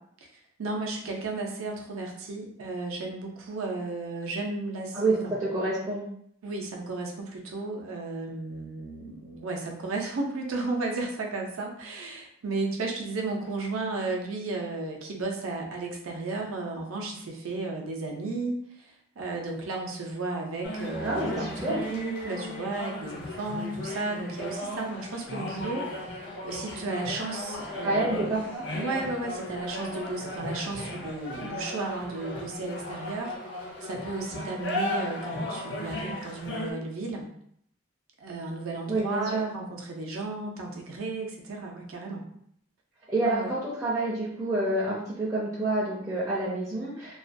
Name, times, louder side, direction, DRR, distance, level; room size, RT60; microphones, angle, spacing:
voice 1, 0.6-5.3 6.4-21.6 21.9-37.3 38.2-42.2 43.2-43.5, right 3 dB, 80° right, 1 dB, 0.5 m, -34 dB
voice 2, 4.9-6.0 21.0-21.8 27.8-28.6 38.9-39.4 43.1-47.2, right 2 dB, 15° right, -8 dB, 0.4 m, -28 dB
sound 1, 20.6-36.7, left 1 dB, 55° left, 0.5 m, -36 dB
2.4 x 2.2 x 2.5 m, 0.68 s
head